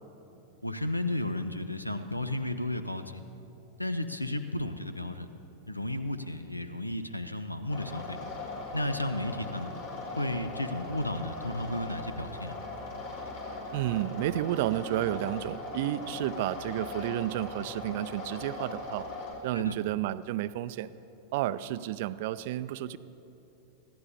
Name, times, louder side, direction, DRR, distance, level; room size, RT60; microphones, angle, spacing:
voice 1, 0.6-3.2 3.8-5.3 5.7-8.2 8.7-9.7 10.2-12.6 19.5-19.8, left 1 dB, 85° left, 11 dB, 0.6 m, -33 dB
sound 1, 7.7-19.3, left 2 dB, 50° left, 3.4 m, -40 dB
voice 2, 13.7-19.1 19.4-20.9 21.3-23.0, right 14 dB, 50° right, 15 dB, 0.4 m, -31 dB
24.5 x 15.0 x 2.8 m, 2.9 s
figure-of-eight pair, 90°, 0 cm